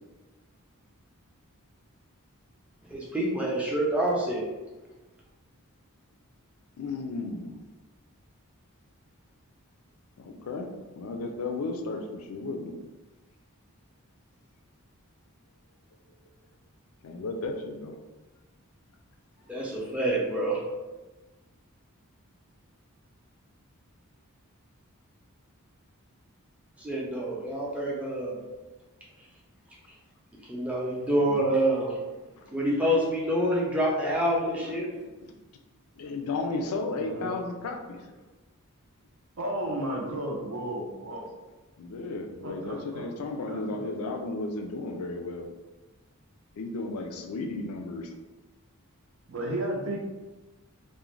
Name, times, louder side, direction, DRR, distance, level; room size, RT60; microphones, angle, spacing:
voice 1, 2.9-4.4 19.5-20.6 26.8-28.4 30.5-31.9 32.5-34.9, right 1 dB, 5° right, -4 dB, 0.5 m, -27 dB
voice 2, 6.8-7.6 10.2-10.7 11.0-12.8 17.0-18.0 32.4-32.7 34.6-34.8 35.2-35.3 36.0-38.2 41.8-45.5 46.6-48.2, left 3 dB, 75° left, 4 dB, 0.4 m, -34 dB
voice 3, 30.9-31.4 36.9-37.3 39.4-41.5 42.4-43.1 43.5-43.9 49.3-50.0, right 1 dB, 65° right, 0 dB, 0.5 m, -34 dB
2.4 x 2.1 x 3.1 m, 1.2 s
head